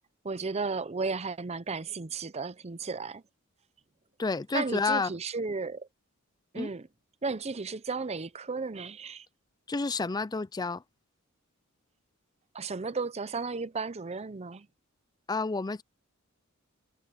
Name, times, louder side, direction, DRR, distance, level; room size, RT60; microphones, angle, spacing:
voice 1, 0.2-3.2 4.5-5.9 6.5-6.9 7.2-9.3 12.5-14.7, right 4 dB, 30° right, 0.6 m, -34 dB
voice 2, 4.2-5.1 6.6-6.7 9.7-10.8 15.3-15.8, left 4 dB, 20° left, 0.4 m, -30 dB
head